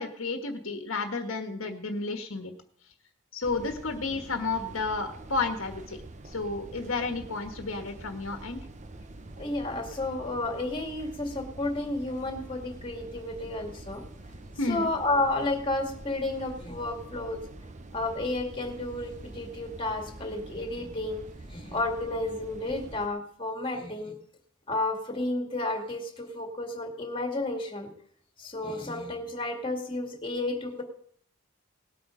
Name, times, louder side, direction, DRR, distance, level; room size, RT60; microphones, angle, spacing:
voice 1, 0.0-2.5 3.3-8.6 14.6-14.9, left 3 dB, 70° left, 5 dB, 1.5 m, -32 dB
sound 1, 3.4-23.1, right 2 dB, 35° right, 0.8 m, -45 dB
voice 2, 9.4-14.0 14.7-17.4 17.9-21.2 21.5-24.1 24.7-27.9 28.4-30.8, left 2 dB, 25° left, 3 dB, 2.2 m, -31 dB
19.0 x 8.5 x 5.1 m, 0.63 s
head